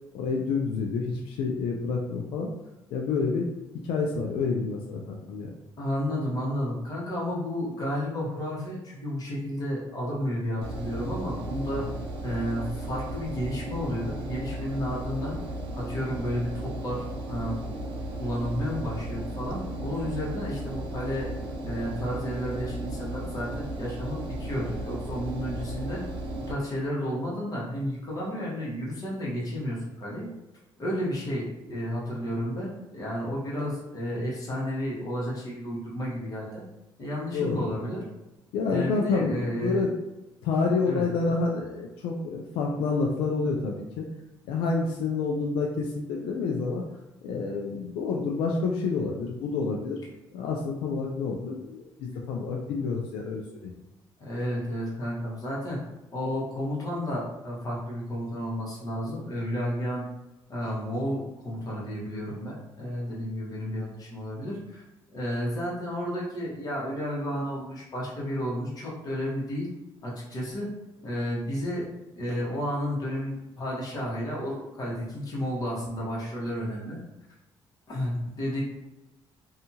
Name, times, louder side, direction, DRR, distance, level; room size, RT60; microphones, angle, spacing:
voice 1, 0.1-2.5 2.9-3.4 3.8-5.5 37.3-37.7 38.5-39.9 40.4-44.1 44.5-46.8 47.2-50.0 50.3-53.7, left 4 dB, 85° left, 0 dB, 0.4 m, -28 dB
voice 2, 5.8-11.9 12.2-15.4 15.7-17.8 18.1-21.3 21.6-26.0 26.5-30.3 30.8-36.6 37.0-38.0 38.7-39.8 40.8-41.3 54.2-55.8 56.1-60.0 60.5-64.8 65.1-69.7 70.0-70.7 71.0-71.9 72.1-77.0 77.9-78.6, equal, 45° left, -5 dB, 1.2 m, -32 dB
Engine, 10.6-26.5, right 1 dB, 70° right, 0.5 m, -35 dB
2.6 x 2.4 x 2.7 m, 0.98 s
cardioid pair, 95°, 9 cm